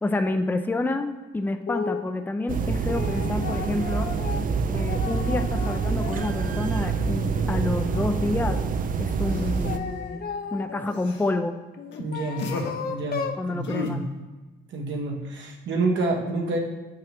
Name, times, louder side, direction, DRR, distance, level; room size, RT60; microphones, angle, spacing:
voice 1, 0.0-1.1 1.3-4.1 4.7-8.6 9.0-10.2 10.5-11.6 13.4-14.1, left 2 dB, 10° left, 6 dB, 0.5 m, -28 dB
sound 1, 1.7-2.1 2.6-6.6 7.0-8.6 9.3-10.9 11.7-13.4, left 6 dB, 50° left, 0.6 m, -35 dB
sound 2, 2.5-9.8, right 5 dB, 45° right, 0.5 m, -26 dB
sound 3, 9.3-10.0 10.9-11.3 11.9-12.0 12.4-12.7 13.6-13.9, left 4 dB, 70° left, 1.0 m, -33 dB
voice 2, 12.0-12.5 12.9-13.2 13.5-14.0 14.7-16.6, right 3 dB, 70° right, 1 dB, 1.3 m, -28 dB
7.6 x 5.7 x 3.5 m, 1.2 s
cardioid pair, 90°, 20 cm